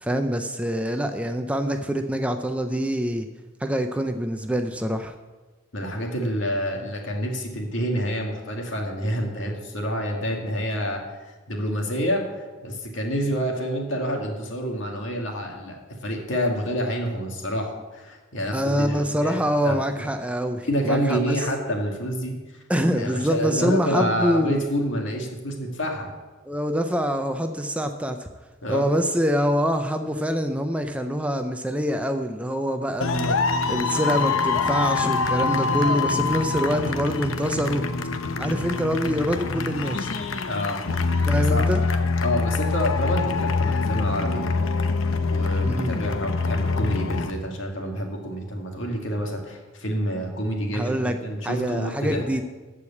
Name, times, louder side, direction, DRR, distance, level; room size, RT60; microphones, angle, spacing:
voice 1, 0.0-3.3 3.6-5.1 18.5-21.4 22.7-24.6 26.5-28.3 28.7-33.4 33.7-37.8 38.4-40.1 41.3-41.8 45.6-46.0 50.7-51.2 51.4-52.4, equal, 5° right, 6 dB, 0.5 m, -25 dB
voice 2, 5.7-12.2 12.6-20.1 20.6-22.3 23.0-26.1 28.6-28.8 40.5-41.6 42.2-44.4 45.3-52.3, equal, 70° left, 1 dB, 2.1 m, -28 dB
sound 1, 33.0-47.3, left 4 dB, 90° left, 0.8 m, -25 dB
14.0 x 4.9 x 8.3 m, 1.3 s
head